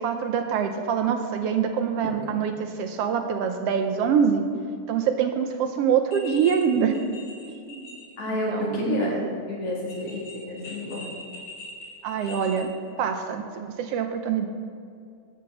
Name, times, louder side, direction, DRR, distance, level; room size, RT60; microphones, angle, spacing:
voice 1, 0.0-4.5 4.9-7.0 7.7-8.0 8.3-9.4 12.0-12.7 13.0-14.5, right 7 dB, 75° right, 6 dB, 1.4 m, -25 dB
sound 1, 6.1-6.6 6.9-8.1 8.4-8.5 9.8-12.6, left 2 dB, 85° left, 4.8 m, -42 dB
voice 2, 8.2-11.0, left 2 dB, 55° left, -3 dB, 2.9 m, -30 dB
11.0 x 5.9 x 7.7 m, 2.4 s
omnidirectional pair, 3.3 m